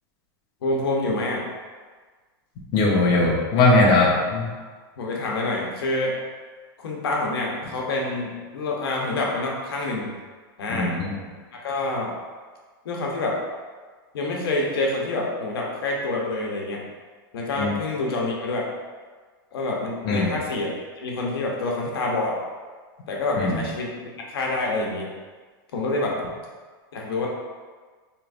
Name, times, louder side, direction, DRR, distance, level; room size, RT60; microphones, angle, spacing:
voice 1, 0.6-1.4 5.0-6.1 6.8-10.1 10.6-10.9 11.5-12.1 12.8-13.4 14.1-16.8 17.3-18.7 19.5-22.4 23.1-24.0 24.3-25.1 25.7-26.2 26.9-27.3, left 2 dB, 85° left, -2 dB, 0.8 m, -27 dB
voice 2, 2.7-4.5 10.7-11.1 17.6-17.7 20.0-20.3 23.4-23.6, left 2 dB, 40° left, -3 dB, 0.8 m, -19 dB
4.5 x 3.0 x 2.5 m, 1.4 s
supercardioid pair, 140°, 12 cm